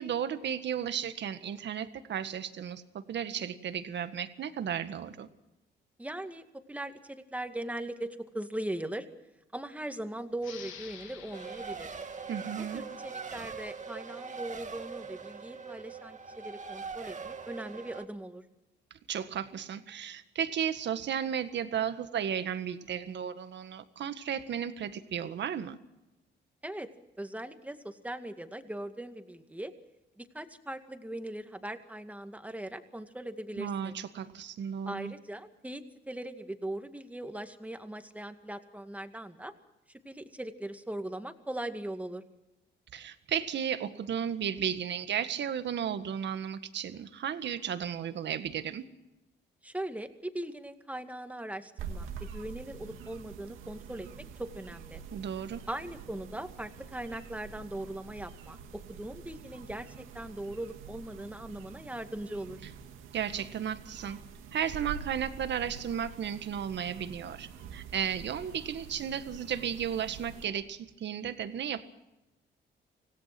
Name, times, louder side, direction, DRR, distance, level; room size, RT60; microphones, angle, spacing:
voice 1, 0.0-5.3 12.3-12.8 19.1-25.8 33.6-35.1 42.9-48.8 55.1-55.6 63.1-64.2 64.5-71.9, right 8 dB, 65° right, 10 dB, 1.7 m, -34 dB
voice 2, 6.0-9.1 9.5-11.9 12.7-18.5 26.6-26.9 27.2-29.7 30.2-34.0 34.9-39.5 39.9-42.2 49.6-52.1 52.3-55.0 55.7-62.6, right 1 dB, 5° right, 7 dB, 2.2 m, -40 dB
sound 1, 10.4-13.6, left 8 dB, 90° left, 3.3 m, -51 dB
Race car auto racing, 11.3-18.0, right 5 dB, 40° right, 2.1 m, -42 dB
sound 2, 51.8-70.4, right 7 dB, 90° right, 2.3 m, -46 dB
26.0 x 17.5 x 6.1 m, 0.96 s
cardioid pair, 90°, 20 cm